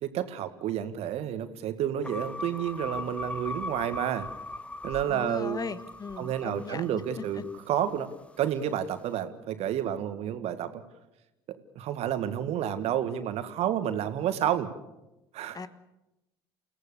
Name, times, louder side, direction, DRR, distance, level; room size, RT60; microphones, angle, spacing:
voice 1, 0.0-4.3 4.8-5.6 6.2-8.1 8.4-10.8 11.5-14.7 15.3-15.6, right 10 dB, 55° right, 11 dB, 1.9 m, -30 dB
sound 1, 2.0-8.4, left 2 dB, 10° left, 1.0 m, -40 dB
voice 2, 5.1-7.4 15.5-15.7, left 5 dB, 30° left, 13 dB, 1.5 m, -38 dB
29.0 x 17.5 x 6.9 m, 0.94 s
figure-of-eight pair, 60°, 13 cm